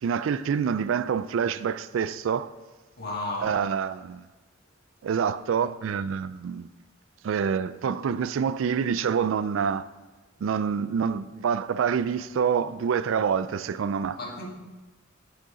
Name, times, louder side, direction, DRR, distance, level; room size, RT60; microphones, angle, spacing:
voice 1, 0.0-2.5 3.4-4.3 5.0-6.7 7.2-9.9 10.4-14.2, right 7 dB, 70° right, 0.3 m, -27 dB
voice 2, 3.0-3.7 14.2-14.5, left 2 dB, 50° left, 1.7 m, -33 dB
10.5 x 6.7 x 3.7 m
head